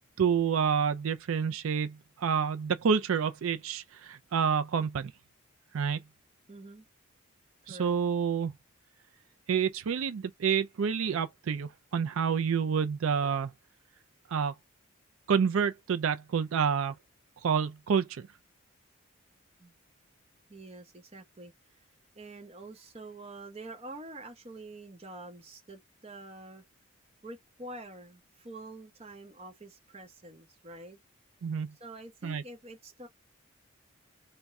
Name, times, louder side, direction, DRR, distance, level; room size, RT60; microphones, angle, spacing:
voice 1, 0.2-5.1 5.7-6.0 7.7-8.5 9.5-13.5 14.3-14.5 15.3-16.9 17.4-18.3 31.4-31.7 32.2-32.4, right 6 dB, 70° right, 0.4 m, -28 dB
voice 2, 6.5-6.9 7.7-8.0 19.6-19.7 20.5-21.5 22.1-26.6 27.2-31.0 31.8-33.1, right 2 dB, 30° right, 0.9 m, -46 dB
3.5 x 2.2 x 4.1 m
head